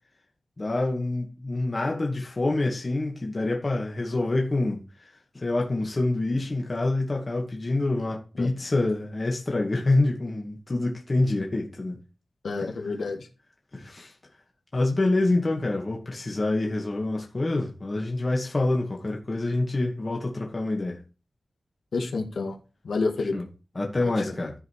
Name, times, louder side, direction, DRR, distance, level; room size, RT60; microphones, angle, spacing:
voice 1, 0.6-4.8 5.3-12.0 12.6-13.0 13.7-14.1 14.7-21.0 23.3-23.4 23.7-24.5, left 2 dB, 35° left, 2.2 m, -26 dB
voice 2, 12.4-13.3 21.9-22.6 22.8-23.3 24.0-24.3, left 3 dB, 90° left, 2.2 m, -29 dB
13.5 x 5.2 x 4.9 m
wide cardioid pair, 115°, 0 cm